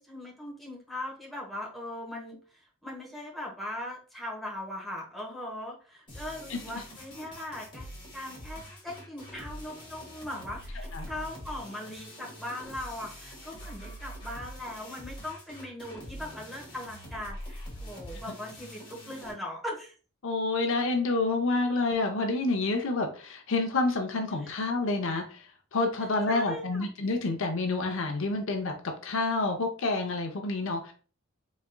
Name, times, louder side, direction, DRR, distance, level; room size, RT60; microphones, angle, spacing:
voice 1, 0.0-7.9 8.1-19.9 24.4-24.5 26.3-26.9, left 1 dB, ahead, -3 dB, 1.1 m, -40 dB
sound 1, 6.1-19.3, equal, 25° left, 1.6 m, -44 dB
voice 2, 20.2-30.9, left 3 dB, 65° left, 4 dB, 0.7 m, -28 dB
4.1 x 3.5 x 2.2 m, 0.38 s
head